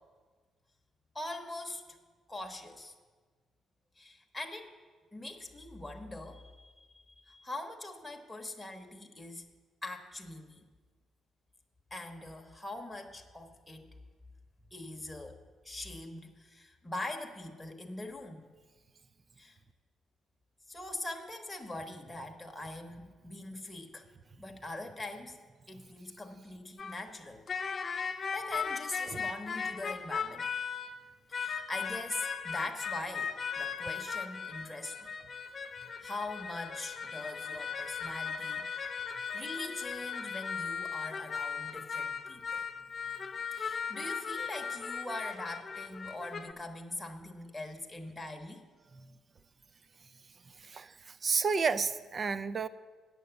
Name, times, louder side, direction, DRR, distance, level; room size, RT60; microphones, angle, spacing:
voice 1, 1.1-1.8 2.3-2.9 4.0-4.8 5.1-9.4 9.8-10.6 11.9-13.9 14.7-15.4 15.6-18.4 19.4-19.6 20.7-24.1 24.4-25.4 25.7-27.4 28.3-30.5 31.3-35.1 36.0-38.8 39.3-42.6 43.5-48.6, left 2 dB, 10° left, 2 dB, 1.0 m, -42 dB
sound 1, 26.8-27.0 27.5-31.0 31.3-46.5, left 6 dB, 45° left, 0.5 m, -38 dB
voice 2, 50.6-52.7, right 5 dB, 40° right, 15 dB, 0.4 m, -32 dB
9.0 x 6.8 x 7.9 m, 1.4 s
cardioid pair, 90°, 0 cm